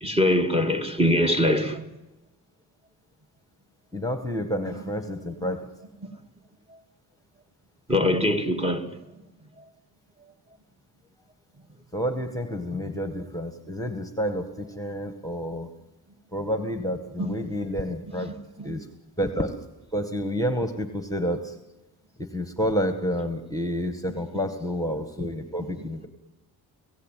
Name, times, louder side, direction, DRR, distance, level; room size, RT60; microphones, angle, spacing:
voice 1, 0.0-1.8 5.4-5.5 7.9-9.0 17.2-17.3 18.6-18.7, left 1 dB, 15° right, 2.4 m, -23 dB
voice 2, 3.9-5.7 11.9-15.7 16.3-18.3 18.6-18.9 19.2-19.5 19.9-21.6 22.2-26.1, equal, 10° left, 1.8 m, -29 dB
29.5 x 16.5 x 9.3 m
cardioid pair, 105°, 38 cm